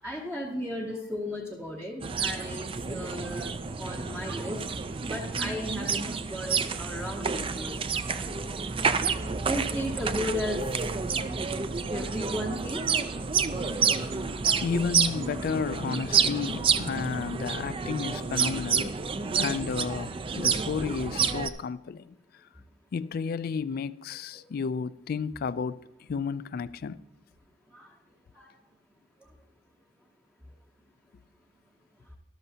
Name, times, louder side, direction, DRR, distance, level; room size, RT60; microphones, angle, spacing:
voice 1, 0.0-7.8 9.4-11.1 11.6-12.8 13.5-13.7 15.2-15.4 17.2-17.3 18.0-18.6 19.2-19.3 27.7-27.9 28.3-28.5 29.2-29.3, left 1 dB, 5° right, 0.7 m, -36 dB
sound 1, 2.0-21.5, right 5 dB, 25° right, 0.4 m, -29 dB
voice 2, 13.4-18.9 19.4-22.1 22.9-25.8 26.1-27.0, left 5 dB, 50° left, 0.3 m, -32 dB
13.0 x 12.0 x 2.8 m
head